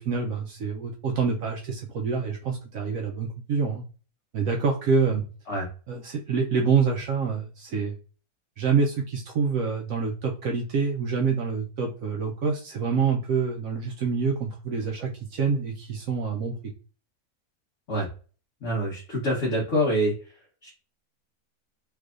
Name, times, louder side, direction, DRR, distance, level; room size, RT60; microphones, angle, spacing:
voice 1, 0.0-3.8 4.3-5.2 5.9-7.9 8.6-16.6, right 5 dB, 70° right, 1 dB, 0.9 m, -26 dB
voice 2, 18.6-20.1 20.6-20.7, equal, 50° left, -5 dB, 1.3 m, -25 dB
3.4 x 3.3 x 2.4 m, 0.37 s
omnidirectional pair, 1.7 m